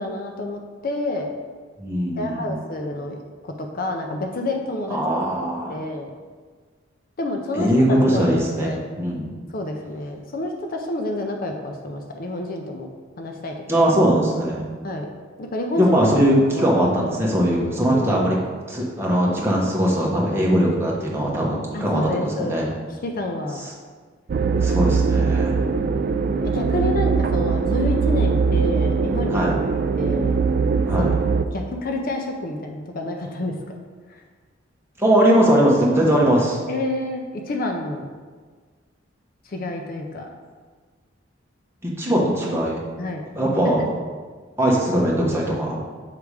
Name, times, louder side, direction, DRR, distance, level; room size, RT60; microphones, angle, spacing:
voice 1, 0.0-1.3 2.2-3.1 3.4-5.0 5.7-6.1 7.2-7.7 8.1-8.8 9.5-12.9 13.2-13.5 14.8-15.1 15.4-15.9 16.5-16.7 17.9-18.3 21.7-22.7 23.0-23.6 24.7-24.9 25.2-25.6 26.5-29.4 30.0-30.3 31.0-31.1 31.5-33.5 36.7-38.0 39.5-40.3 43.0-43.2, left 1 dB, 45° left, 3 dB, 0.5 m, -28 dB
voice 2, 1.8-2.6 4.9-5.8 7.5-9.3 13.7-14.6 15.8-18.4 18.7-22.7 24.6-25.6 29.3-29.5 30.9-31.1 35.0-36.6 41.8-42.8 43.3-43.9 44.6-45.8, equal, 15° right, -4 dB, 1.1 m, -20 dB
sound 1, 24.3-31.5, right 5 dB, 50° right, 0.3 m, -21 dB
6.6 x 3.5 x 4.8 m, 1.5 s
head